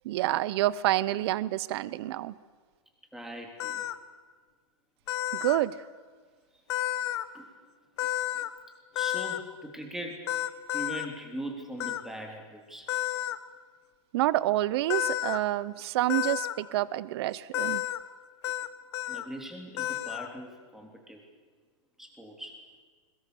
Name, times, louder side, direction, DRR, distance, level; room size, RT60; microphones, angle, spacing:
voice 1, 0.0-2.3 5.4-5.7 14.1-17.8, right 15 dB, 50° right, 19 dB, 0.9 m, -28 dB
voice 2, 3.1-3.9 6.5-6.6 7.3-7.5 8.9-10.3 10.7-12.9 19.1-21.2 22.0-22.6, right 1 dB, ahead, 1 dB, 3.5 m, -41 dB
sound 1, 3.6-3.9 5.1-5.6 6.7-7.2 8.0-8.5 9.0-9.4 10.3-11.1 11.8-12.0 12.9-13.4 14.9-15.4 16.1-16.5 17.5-18.0 18.4-18.7 18.9-19.2 19.8-20.3, left 14 dB, 55° left, 1.2 m, -31 dB
22.0 x 21.0 x 7.0 m, 1.5 s
hypercardioid pair, 140°, 17 cm